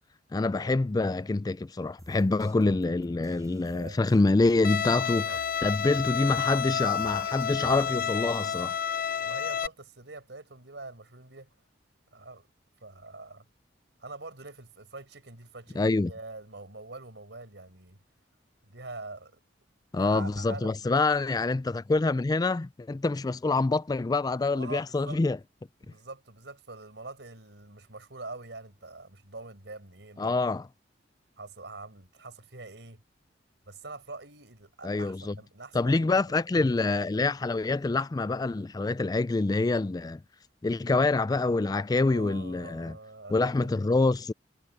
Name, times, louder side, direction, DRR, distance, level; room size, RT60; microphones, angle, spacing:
voice 1, 0.3-5.3 5.6-8.8 15.8-16.1 19.9-25.4 30.2-30.7 34.8-35.4 35.7-40.2 40.6-43.0 43.3-44.3, left 3 dB, 20° left, 0.3 m, -26 dB
sound 1, 2.0-8.6, right 1 dB, 20° right, 7.7 m, -54 dB
voice 2, 3.6-4.0 5.2-5.4 9.2-11.5 12.1-12.5 12.8-13.4 14.0-18.0 18.7-19.4 19.9-20.9 24.5-25.2 25.8-30.4 31.4-33.0 33.6-36.3 42.0-43.7, right 3 dB, 75° right, 5.0 m, -44 dB
Bowed string instrument, 4.6-9.7, left 7 dB, 55° left, 0.7 m, -30 dB
head